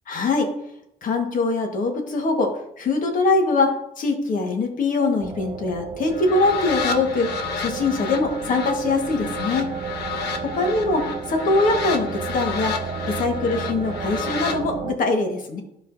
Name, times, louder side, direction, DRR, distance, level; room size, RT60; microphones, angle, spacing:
voice 1, 0.1-0.5 1.0-7.3 7.6-9.7 10.4-12.8 13.1-15.6, left 3 dB, 50° left, 2 dB, 1.7 m, -23 dB
sound 1, 5.2-15.0, right 6 dB, 30° right, 0.5 m, -32 dB
sound 2, 6.1-14.6, left 6 dB, 85° left, 1.0 m, -31 dB
12.0 x 5.0 x 2.8 m, 0.79 s
cardioid pair, 110°, 17 cm